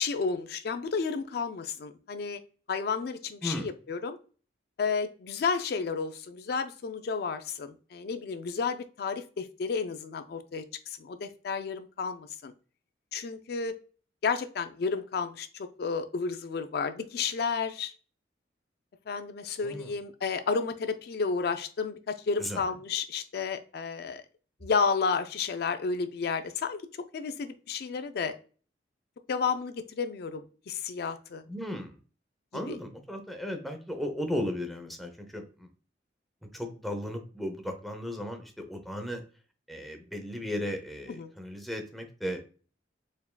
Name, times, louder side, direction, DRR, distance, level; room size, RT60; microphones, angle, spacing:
voice 1, 0.0-2.4 2.7-4.2 4.8-12.5 13.1-13.7 14.2-17.9 19.1-24.2 24.6-26.8 27.1-28.3 29.3-31.4 32.5-32.8 41.1-41.3, left 5 dB, 60° left, 9 dB, 0.4 m, -32 dB
voice 2, 31.5-31.9 32.5-35.4 36.5-39.2 39.7-42.4, left 1 dB, ahead, 4 dB, 0.6 m, -35 dB
4.5 x 3.5 x 2.2 m, 0.38 s
head